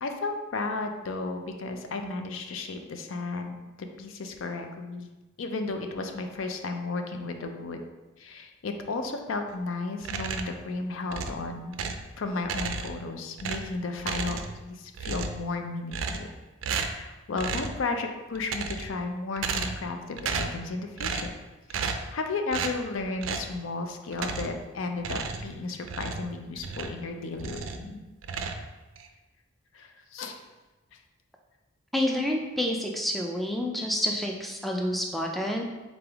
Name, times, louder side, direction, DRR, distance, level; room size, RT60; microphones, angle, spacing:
voice 1, 0.0-5.1 5.4-7.8 8.2-11.7 12.2-16.3 16.9-21.3 21.7-28.0 29.7-30.4, left 3 dB, 70° left, 5 dB, 0.5 m, -34 dB
sound 1, 10.0-10.6 11.1-12.1 12.4-13.1 13.4-14.7 14.9-15.5 15.9-16.4 16.6-17.0 17.4-17.8 18.3-19.0 19.4-19.9 20.2-20.6 21.0-21.4 21.7-22.1 22.5-22.8 23.2-23.5 24.1-24.6 25.0-27.0 27.4-27.9 28.2-29.1, right 5 dB, 70° right, 0.4 m, -33 dB
voice 2, 31.9-35.6, left 1 dB, ahead, 0 dB, 0.3 m, -28 dB
3.9 x 3.4 x 3.4 m, 1.1 s
head